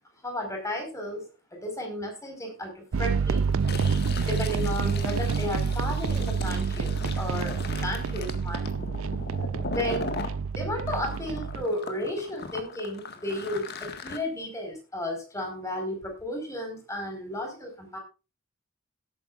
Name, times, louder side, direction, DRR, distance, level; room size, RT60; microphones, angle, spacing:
voice 1, 0.2-1.2 1.5-3.5 4.2-8.7 9.7-10.1 10.6-18.0, left 1 dB, 15° left, 2 dB, 5.0 m, -33 dB
sound 1, 2.9-11.6, right 5 dB, 85° right, 0.5 m, -28 dB
Fill (with liquid), 3.5-10.3 10.9-14.2, left 3 dB, 55° left, 1.7 m, -38 dB
17.5 x 9.2 x 2.5 m, 0.30 s
head